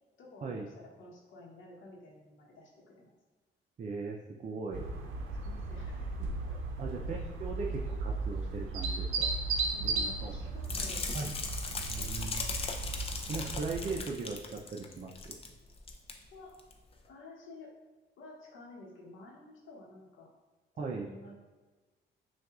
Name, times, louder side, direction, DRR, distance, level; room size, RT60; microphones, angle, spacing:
voice 1, 0.2-3.1 5.4-6.6 9.7-11.0 12.0-12.4 13.2-13.7 16.3-16.5 17.1-17.7 18.2-20.3 20.8-21.4, left 2 dB, 80° left, -2 dB, 1.0 m, -52 dB
voice 2, 3.8-4.9 6.8-9.3 9.8-10.4 11.1-11.3 11.9-12.4 13.3-15.4 20.8-21.1, right 4 dB, 35° right, 0 dB, 0.5 m, -39 dB
sound 1, 4.7-14.0, right 3 dB, 85° right, 0.6 m, -36 dB
sound 2, 10.6-15.5 15.8-16.1 16.6-16.7, left 3 dB, 30° left, 0.5 m, -38 dB
5.7 x 2.4 x 2.4 m, 1.2 s
cardioid pair, 90°, 20 cm